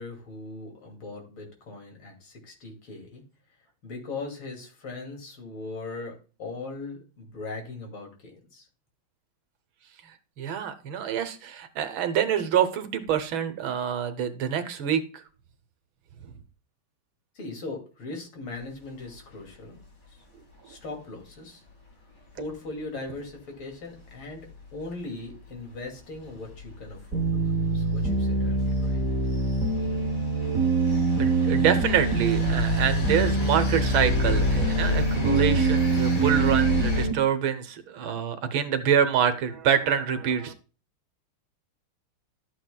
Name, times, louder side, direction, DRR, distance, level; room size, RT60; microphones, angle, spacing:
voice 1, 0.0-3.2 3.8-8.7 17.3-19.8 20.1-20.2 20.6-21.6 22.3-29.0, left 3 dB, 80° left, 2 dB, 3.3 m, -39 dB
voice 2, 10.4-15.2 16.2-16.3 31.2-40.5, right 8 dB, 75° right, 10 dB, 1.7 m, -26 dB
sound 1, 18.6-19.5 19.8-19.9 20.2-20.3 20.5-20.8 21.7-21.9 22.3-22.8 23.3-23.4 23.7-37.1, left 3 dB, 35° left, 2.4 m, -32 dB
sound 2, 27.1-37.1, right 3 dB, 50° right, 1.1 m, -25 dB
12.5 x 8.0 x 2.2 m, 0.35 s
omnidirectional pair, 2.3 m